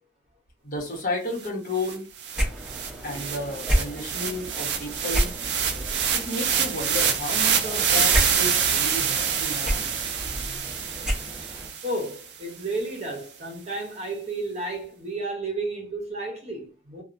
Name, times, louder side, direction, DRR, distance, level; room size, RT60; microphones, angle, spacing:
voice 1, 0.6-2.1 3.0-5.3 6.1-10.2 10.5-10.6, left 1 dB, 45° left, 1.1 m, -32 dB
sound 1, 1.4-1.5 1.8-12.1, right 7 dB, 65° right, 0.4 m, -26 dB
sound 2, 2.3-11.7, equal, 5° right, 0.8 m, -31 dB
voice 2, 11.8-17.0, right 2 dB, 35° right, 0.9 m, -32 dB
2.8 x 2.3 x 2.5 m
head